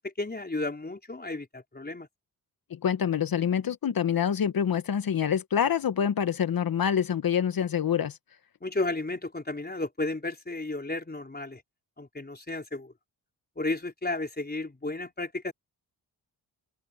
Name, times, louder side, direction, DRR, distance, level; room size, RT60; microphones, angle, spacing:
voice 1, 0.0-2.1 8.6-11.6 12.0-12.9 13.6-15.5, left 2 dB, 25° left, 4.4 m, -33 dB
voice 2, 2.7-8.2, left 8 dB, 55° left, 1.0 m, -26 dB
cardioid pair, 75°, 41 cm